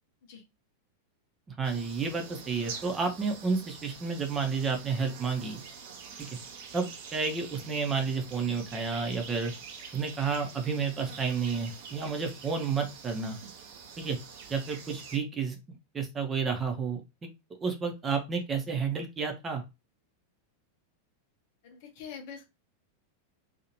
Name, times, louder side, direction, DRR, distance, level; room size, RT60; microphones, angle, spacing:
voice 1, 1.5-5.6 6.2-6.3 6.7-9.5 9.9-13.4 14.0-14.2 14.5-15.6 15.9-17.3 17.6-19.6, right 5 dB, 20° right, 3 dB, 0.8 m, -31 dB
sound 1, 1.6-15.2, right 6 dB, 50° right, 0.6 m, -46 dB
voice 2, 21.6-22.4, left 7 dB, 50° left, 3 dB, 0.8 m, -44 dB
2.7 x 2.4 x 2.9 m, 0.25 s
figure-of-eight pair, 90°, 0 cm